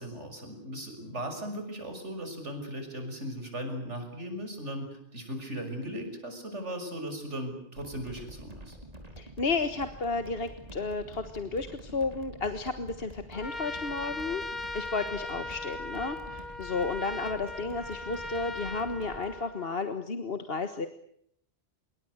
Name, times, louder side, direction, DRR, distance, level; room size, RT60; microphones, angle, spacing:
voice 1, 0.0-8.8, equal, 85° right, 6 dB, 6.7 m, -38 dB
sound 1, 7.7-19.4, right 1 dB, 35° right, 4.4 m, -47 dB
voice 2, 9.2-14.4 14.7-20.9, left 4 dB, 55° left, 9 dB, 1.7 m, -32 dB
Trumpet, 13.3-19.9, left 2 dB, 40° left, 1.8 m, -39 dB
27.0 x 23.5 x 8.1 m, 0.69 s
omnidirectional pair, 1.2 m